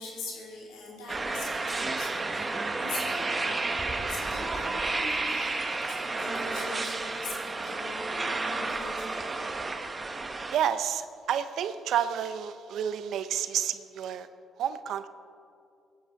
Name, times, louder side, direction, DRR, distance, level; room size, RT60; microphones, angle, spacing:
voice 1, 0.0-3.6 3.8-9.4, left 3 dB, 80° left, -4 dB, 3.2 m, -42 dB
sound 1, 1.1-10.6, right 3 dB, 30° right, 1.1 m, -31 dB
voice 2, 10.5-14.3 14.6-15.1, right 9 dB, 70° right, 11 dB, 0.6 m, -30 dB
17.5 x 9.6 x 5.7 m, 2.4 s
supercardioid pair, 60°, 0 cm